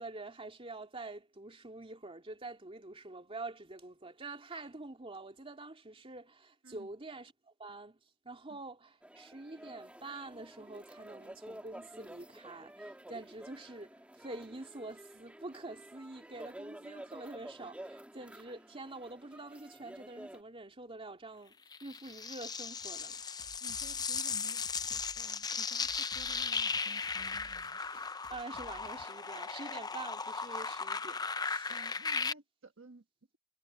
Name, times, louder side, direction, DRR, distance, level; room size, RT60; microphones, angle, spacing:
voice 1, 0.0-23.4 28.3-31.8, right 2 dB, 25° right, 2.7 m, -46 dB
sound 1, 9.0-20.4, right 1 dB, 5° right, 2.1 m, -51 dB
sound 2, 21.7-32.3, left 5 dB, 20° left, 0.7 m, -37 dB
sound 3, 22.8-29.1, left 2 dB, 45° left, 1.2 m, -59 dB
voice 2, 23.6-27.8 31.7-33.0, right 3 dB, 70° right, 1.4 m, -55 dB
head